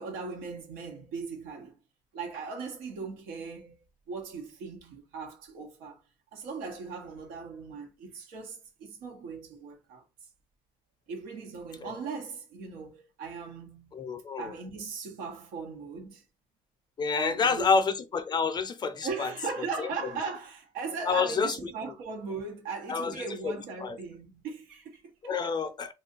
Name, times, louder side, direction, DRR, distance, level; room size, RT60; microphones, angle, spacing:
voice 1, 0.0-1.7 2.1-3.8 4.1-6.0 6.3-10.0 11.1-14.0 14.4-16.2 17.1-17.8 19.0-25.6, right 4 dB, 85° right, 1.1 m, -39 dB
voice 2, 13.9-14.5 17.0-19.3 19.8-19.9 21.1-21.7 22.9-23.5 23.8-24.0 25.2-25.9, left 5 dB, 30° left, 0.5 m, -28 dB
2.7 x 2.4 x 3.8 m
cardioid pair, 130°, 15 cm